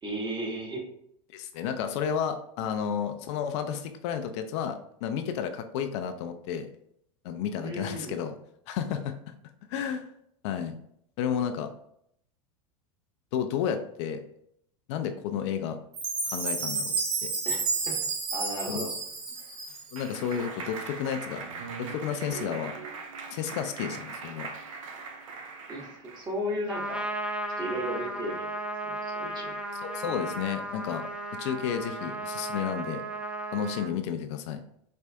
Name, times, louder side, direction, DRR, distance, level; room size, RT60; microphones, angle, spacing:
voice 1, 0.0-0.8 7.6-8.2 17.4-18.0 18.3-18.9 25.7-27.0 27.6-28.5 28.8-29.6, right 1 dB, 25° right, -1 dB, 1.2 m, -35 dB
voice 2, 1.3-6.7 7.2-8.3 8.7-9.3 9.7-10.1 10.4-10.7 11.2-11.7 13.3-14.2 14.9-15.8 16.3-17.3 18.7-18.9 19.9-21.4 21.8-22.7 23.3-24.5 29.8-31.0 31.4-33.0 33.5-34.6, left 8 dB, 60° left, 7 dB, 0.4 m, -32 dB
Chime, 15.9-20.1, right 4 dB, 55° right, 1.1 m, -31 dB
Clapping, 19.1-26.4, right 4 dB, 75° right, 0.5 m, -40 dB
Trumpet, 26.7-33.9, right 1 dB, 5° right, 0.4 m, -35 dB
4.3 x 2.5 x 2.3 m, 0.70 s
hypercardioid pair, 95°, 17 cm